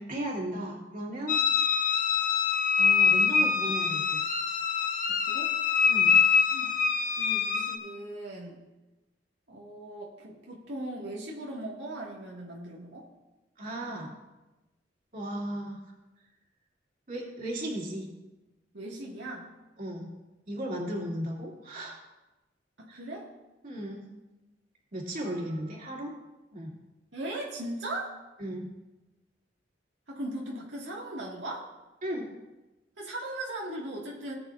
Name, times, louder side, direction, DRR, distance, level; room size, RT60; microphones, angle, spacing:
voice 1, 0.0-1.4 2.7-4.2 5.9-6.1 13.6-14.1 15.1-15.8 17.1-18.1 19.8-20.1 20.5-22.0 22.9-23.0 23.6-24.0 24.9-26.1 26.5-26.7 28.4-28.7 32.0-32.3, right 1 dB, 50° right, -3 dB, 2.6 m, -35 dB
sound 1, 1.3-7.8, left 6 dB, 50° left, 0.9 m, -24 dB
voice 2, 5.1-5.5 6.5-6.8 7.2-8.6 9.5-13.1 18.7-19.5 22.8-23.3 25.2-25.6 27.1-28.2 30.1-31.7 33.0-34.3, right 1 dB, 85° right, -4 dB, 1.9 m, -38 dB
18.0 x 8.7 x 2.5 m, 1.1 s
head